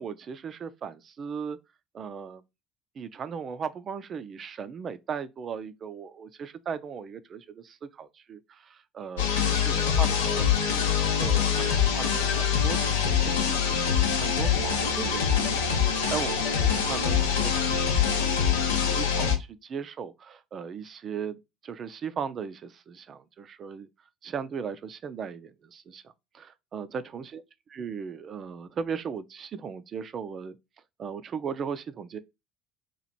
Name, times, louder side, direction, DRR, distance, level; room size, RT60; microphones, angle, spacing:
voice 1, 0.0-1.6 1.9-2.4 3.0-10.9 11.2-15.6 16.1-18.4 18.8-23.9 24.2-26.0 26.3-27.4 27.7-30.5 31.0-32.2, right 6 dB, 45° right, 0.5 m, -37 dB
sound 1, 9.2-19.4, left 7 dB, 80° left, 0.6 m, -24 dB
3.0 x 2.4 x 4.1 m
hypercardioid pair, 60°, 0 cm